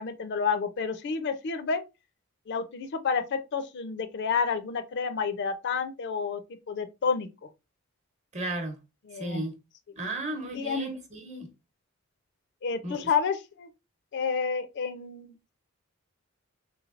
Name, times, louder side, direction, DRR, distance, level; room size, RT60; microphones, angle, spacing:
voice 1, 0.0-1.8 2.5-6.4 6.7-7.3 9.1-9.5 10.5-10.9 12.6-13.7 14.1-15.5, left 5 dB, 50° left, 0.4 m, -30 dB
voice 2, 8.3-8.8 9.2-9.6 10.0-11.5 12.8-13.1, right 2 dB, 30° right, 0.8 m, -34 dB
3.2 x 3.2 x 2.4 m
head